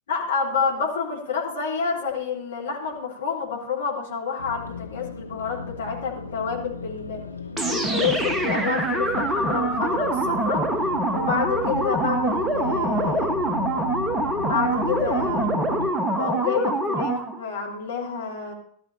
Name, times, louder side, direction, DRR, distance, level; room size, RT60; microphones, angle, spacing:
voice 1, 0.1-7.2 7.7-10.8 11.1-13.4 14.4-15.5 16.1-18.5, left 6 dB, 65° left, -2 dB, 3.8 m, -28 dB
sound 1, 4.4-15.9, left 3 dB, 80° left, 0.7 m, -35 dB
sound 2, 7.6-17.4, right 2 dB, 10° right, 1.4 m, -25 dB
16.5 x 13.0 x 2.8 m, 0.62 s
figure-of-eight pair, 90°, 0 cm